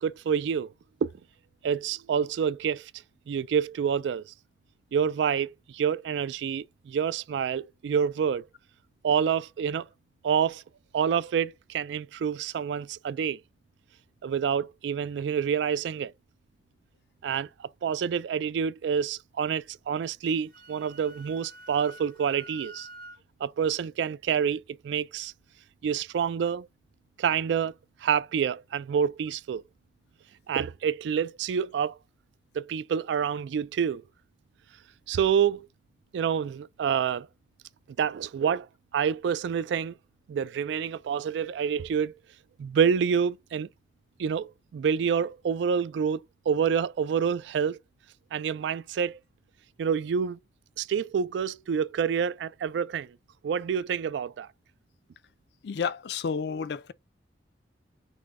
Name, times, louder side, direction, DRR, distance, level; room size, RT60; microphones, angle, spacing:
voice 1, 0.0-0.7 1.0-1.1 1.6-2.9 3.3-4.3 4.9-8.5 9.0-9.9 10.2-10.6 10.9-13.4 14.2-16.1 17.2-22.9 23.4-25.3 25.8-26.7 27.2-27.7 28.0-29.6 30.5-32.0 32.5-34.0 35.1-35.7 36.1-37.3 38.0-38.7 38.9-39.9 40.3-42.1 42.6-43.7 44.2-47.8 48.3-49.2 49.8-50.4 50.8-53.2 53.4-54.5, right 7 dB, 80° right, 0.3 m, -27 dB
Wind instrument woodwind instrument, 20.3-23.2, right 1 dB, 50° right, 0.8 m, -48 dB
voice 2, 55.6-56.9, left 6 dB, 65° left, 0.4 m, -31 dB
6.1 x 2.2 x 3.5 m
head